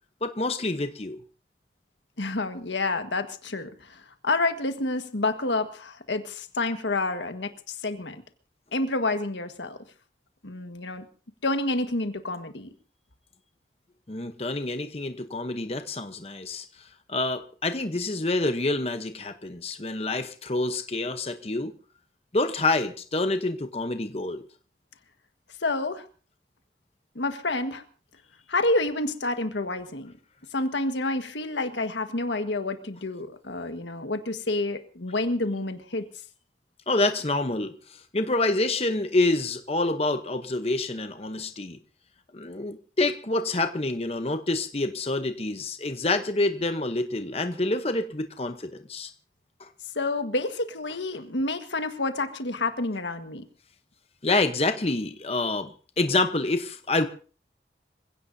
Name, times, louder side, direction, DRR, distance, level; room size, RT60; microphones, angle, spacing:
voice 1, 0.2-1.2 14.1-16.6 17.1-21.7 22.3-24.4 36.9-41.8 42.3-49.1 49.6-49.7 54.2-57.1, left 2 dB, 35° left, 8 dB, 0.9 m, -27 dB
voice 2, 2.2-8.2 8.7-9.8 10.4-11.0 11.4-12.7 25.6-26.0 27.1-27.8 28.5-30.1 30.5-36.1 49.9-53.4, left 2 dB, 90° left, 8 dB, 1.6 m, -29 dB
26.5 x 16.5 x 2.7 m, 0.39 s
head